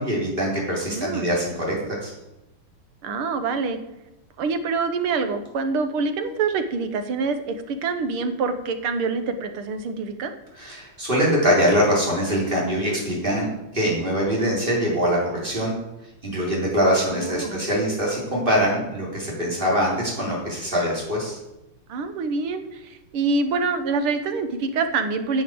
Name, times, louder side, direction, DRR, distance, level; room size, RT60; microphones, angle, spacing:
voice 1, 0.0-1.7 2.0-2.1 10.5-15.8 16.2-21.4, equal, 25° right, -4 dB, 4.6 m, -23 dB
voice 2, 0.9-1.4 3.0-3.8 4.4-10.3 17.1-17.6 21.9-25.4, right 4 dB, 85° right, 9 dB, 2.0 m, -26 dB
9.8 x 8.0 x 7.8 m, 0.94 s
omnidirectional pair, 2.3 m